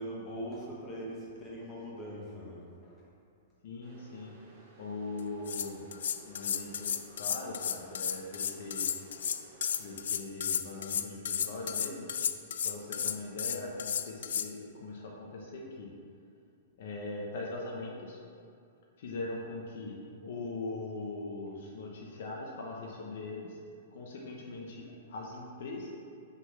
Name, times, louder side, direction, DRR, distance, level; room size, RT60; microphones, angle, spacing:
voice 1, 0.0-3.0, equal, 15° left, -5 dB, 1.1 m, -41 dB
voice 2, 3.6-4.3 4.8-5.8 6.1-9.1 9.8-12.1 12.6-15.9 16.8-18.2 19.0-23.6 23.9-25.9, left 2 dB, 55° left, -2 dB, 0.8 m, -41 dB
sound 1, 3.8-10.0, right 2 dB, 35° right, 1.4 m, -57 dB
sound 2, 5.2-14.5, left 8 dB, 70° left, 0.3 m, -33 dB
5.6 x 4.0 x 5.8 m, 2.4 s
hypercardioid pair, 175°, 0 cm